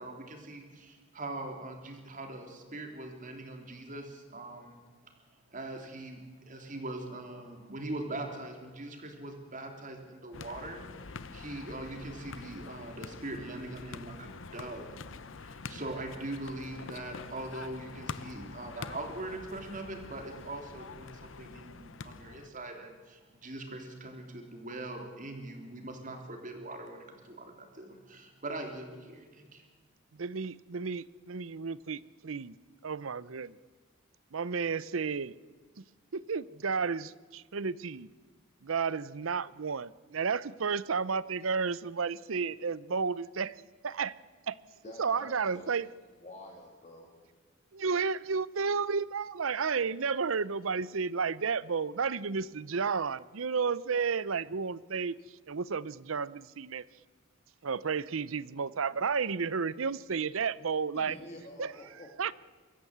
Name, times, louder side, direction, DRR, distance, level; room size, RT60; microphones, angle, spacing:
voice 1, 0.0-4.8 5.5-14.9 15.4-29.6, right 2 dB, 40° right, 4 dB, 3.6 m, -42 dB
sound 1, 10.3-22.5, left 4 dB, 65° left, 0.8 m, -45 dB
voice 2, 30.2-32.6 32.8-33.6 34.3-35.3 35.8-35.9 36.1-38.1 38.6-43.6 43.8-44.1 44.5-44.6 45.0-45.9 47.7-55.2 55.5-56.8 57.6-61.2 61.6-61.7 62.2-62.3, right 5 dB, 80° right, 19 dB, 0.7 m, -32 dB
voice 3, 44.8-45.8 46.2-47.1 60.9-62.1, left 1 dB, 35° left, -1 dB, 2.9 m, -48 dB
24.0 x 14.0 x 8.0 m, 1.4 s
head